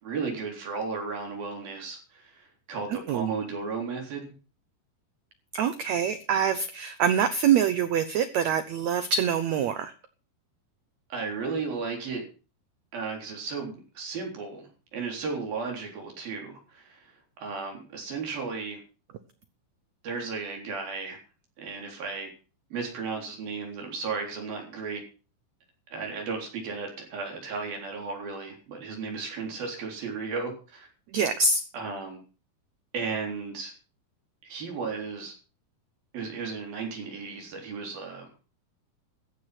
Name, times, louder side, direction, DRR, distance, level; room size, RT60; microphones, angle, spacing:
voice 1, 0.0-4.3 11.1-12.2 12.9-18.8 20.0-21.2 21.6-22.3 22.7-25.0 25.9-30.9 31.7-32.2 32.9-33.7 34.4-35.3 36.1-38.3, right 4 dB, 70° right, 1 dB, 5.6 m, -34 dB
voice 2, 5.5-9.9 31.1-31.6, right 7 dB, 90° right, 11 dB, 1.5 m, -25 dB
15.0 x 9.1 x 6.0 m, 0.36 s
omnidirectional pair, 4.4 m